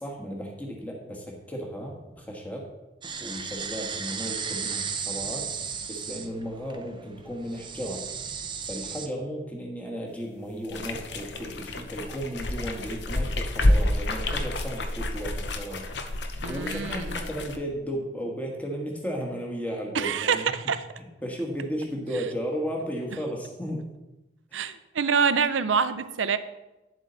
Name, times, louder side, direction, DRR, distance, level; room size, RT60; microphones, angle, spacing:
voice 1, 0.0-2.7 3.2-5.5 5.9-8.0 8.7-15.8 16.5-20.5 21.0-23.9 24.5-24.7, equal, 10° left, -1 dB, 1.4 m, -34 dB
sound 1, 3.0-9.1, right 6 dB, 25° right, 0.6 m, -35 dB
sound 2, 10.6-17.6, left 1 dB, 65° left, 0.8 m, -28 dB
voice 2, 16.4-17.2 19.9-20.8 24.5-26.4, right 6 dB, 85° right, 13 dB, 0.6 m, -26 dB
10.0 x 7.5 x 4.0 m, 1.0 s
head